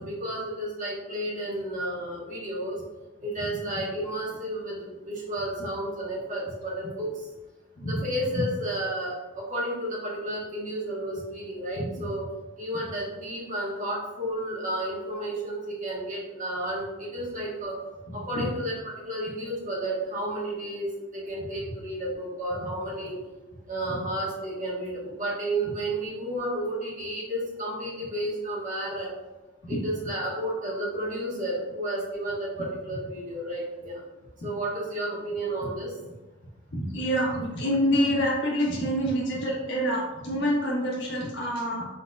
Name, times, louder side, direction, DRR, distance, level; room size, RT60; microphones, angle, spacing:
voice 1, 0.1-2.8 3.2-7.1 7.8-12.2 12.6-17.9 18.1-23.2 23.7-29.1 29.7-34.0 34.4-35.9, right 1 dB, 40° right, -4 dB, 1.2 m, -32 dB
voice 2, 36.7-41.9, equal, 65° left, -4 dB, 1.2 m, -26 dB
4.1 x 3.9 x 2.3 m, 1.1 s
head